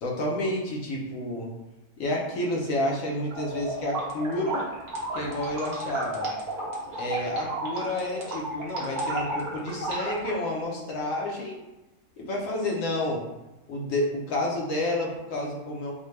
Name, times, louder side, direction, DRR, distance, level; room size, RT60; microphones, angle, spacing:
voice 1, 0.0-1.5 2.0-4.6 5.1-6.3 7.0-11.6 12.2-13.2 13.7-15.9, left 1 dB, 65° left, -2 dB, 1.0 m, -30 dB
sound 1, 3.3-10.3, right 1 dB, 35° right, 0.7 m, -32 dB
4.2 x 2.2 x 3.1 m, 1.0 s
omnidirectional pair, 1.6 m